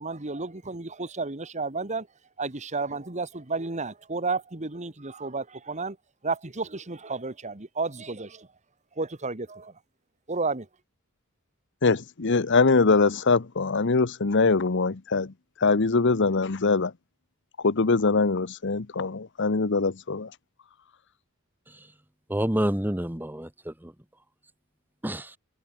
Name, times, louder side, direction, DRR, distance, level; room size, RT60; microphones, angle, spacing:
voice 1, 0.0-2.1 2.4-6.0 6.2-8.5 9.0-9.7 10.3-10.7, right 3 dB, 30° right, 1.5 m, -32 dB
voice 2, 11.8-15.3 15.6-16.9 17.6-20.3, left 4 dB, 55° left, 0.9 m, -23 dB
voice 3, 22.3-23.9 25.0-25.4, right 1 dB, 10° right, 1.2 m, -28 dB
head